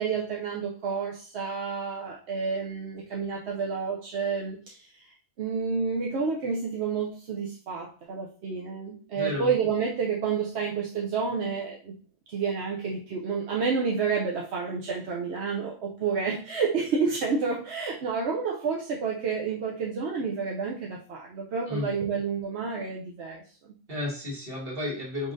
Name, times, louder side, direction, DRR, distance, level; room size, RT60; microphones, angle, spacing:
voice 1, 0.0-4.9 5.4-11.9 12.3-23.7, right 5 dB, 60° right, -1 dB, 0.9 m, -30 dB
voice 2, 9.1-9.5 21.7-21.9 23.9-25.3, left 2 dB, 45° right, -4 dB, 1.9 m, -32 dB
5.5 x 3.2 x 2.6 m, 0.40 s
omnidirectional pair, 1.4 m